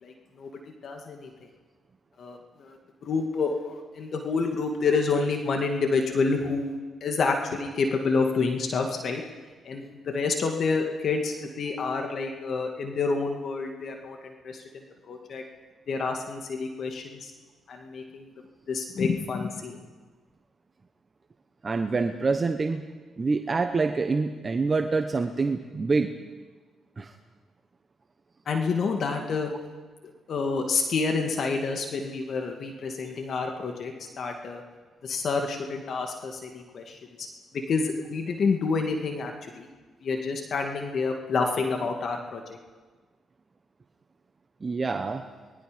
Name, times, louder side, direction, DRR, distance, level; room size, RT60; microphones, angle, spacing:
voice 1, 0.0-0.5 0.8-1.3 2.2-2.8 3.0-9.2 9.6-15.4 15.9-17.3 17.7-18.3 18.7-19.8 28.5-29.5 30.3-34.6 35.0-37.3 37.7-39.7 40.0-42.4, left 4 dB, 60° left, 3 dB, 2.4 m, -28 dB
voice 2, 21.6-22.8 23.2-26.1 27.0-27.1 44.6-45.2, right 4 dB, 35° right, 6 dB, 1.2 m, -26 dB
25.0 x 21.0 x 5.4 m, 1.4 s
supercardioid pair, 65°, 0 cm